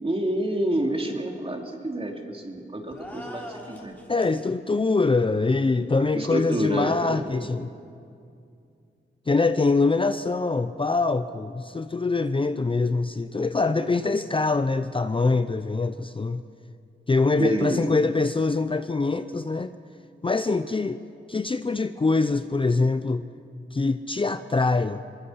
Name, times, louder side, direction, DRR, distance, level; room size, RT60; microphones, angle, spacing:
voice 1, 0.0-3.9 6.1-7.2 17.4-17.8, right 1 dB, 30° right, 2 dB, 2.8 m, -28 dB
sound 1, 2.9-4.4, equal, 10° left, 3.6 m, -42 dB
voice 2, 4.1-7.7 9.3-16.4 17.1-19.7 20.2-21.0 21.3-23.2 23.7-25.0, left 3 dB, 25° left, 10 dB, 0.6 m, -24 dB
24.0 x 21.0 x 5.7 m, 2.4 s
wide cardioid pair, 80°, 20 cm